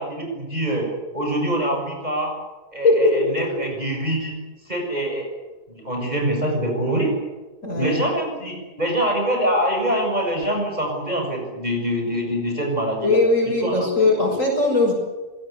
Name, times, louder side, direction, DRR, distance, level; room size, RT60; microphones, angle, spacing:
voice 1, 0.0-2.3 2.7-5.3 5.7-7.1 7.8-13.2 13.6-13.9 14.2-14.3, right 1 dB, 25° right, 1 dB, 7.2 m, -24 dB
voice 2, 7.6-8.0 13.0-14.9, left 2 dB, 50° left, 1 dB, 7.2 m, -19 dB
26.5 x 18.5 x 8.4 m, 1.2 s
omnidirectional pair, 1.8 m